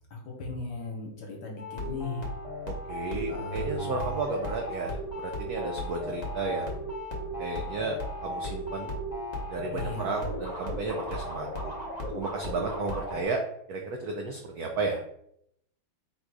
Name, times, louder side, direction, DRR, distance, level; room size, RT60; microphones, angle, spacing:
voice 1, 0.1-2.3 3.3-4.1 9.7-10.3, left 2 dB, 60° left, -1 dB, 1.5 m, -37 dB
sound 1, 1.6-13.2, left 1 dB, 45° left, 0.5 m, -35 dB
voice 2, 2.7-6.9 7.4-8.9 9.5-11.7 12.1-13.4 13.7-15.0, right 3 dB, 90° right, 2 dB, 0.8 m, -33 dB
3.9 x 2.4 x 4.6 m, 0.73 s
omnidirectional pair, 2.2 m